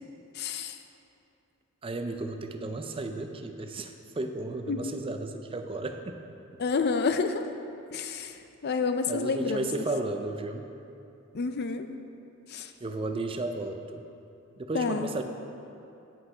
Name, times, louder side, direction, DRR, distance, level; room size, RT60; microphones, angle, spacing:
voice 1, 0.3-0.8 4.7-4.8 6.6-7.5 7.9-9.7 11.3-11.9 12.5-12.7 14.7-15.1, left 4 dB, 50° left, 8 dB, 0.4 m, -29 dB
voice 2, 1.8-6.4 9.1-10.7 12.8-14.1 14.6-15.2, right 2 dB, 25° right, 6 dB, 0.4 m, -34 dB
8.5 x 8.0 x 4.9 m, 2.8 s
head